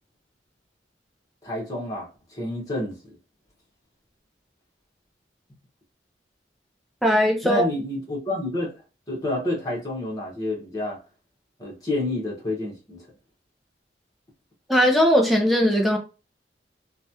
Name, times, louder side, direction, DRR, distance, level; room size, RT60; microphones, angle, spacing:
voice 1, 1.4-2.1 2.3-2.9 7.4-8.7 9.1-11.0 11.6-13.0, left 1 dB, 20° left, 1.1 m, -28 dB
voice 2, 7.0-7.6 14.7-16.0, equal, ahead, 0.5 m, -19 dB
3.0 x 2.3 x 2.7 m
head